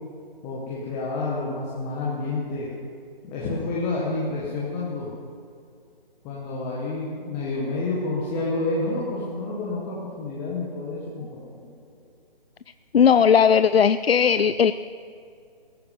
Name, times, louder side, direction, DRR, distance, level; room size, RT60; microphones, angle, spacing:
voice 1, 0.4-2.7 3.2-5.1 6.2-11.7, left 2 dB, 10° left, -5 dB, 1.0 m, -29 dB
voice 2, 12.9-14.7, left 7 dB, 85° left, 13 dB, 0.5 m, -17 dB
17.5 x 14.0 x 5.4 m, 2.3 s
figure-of-eight pair, 160°, 30 cm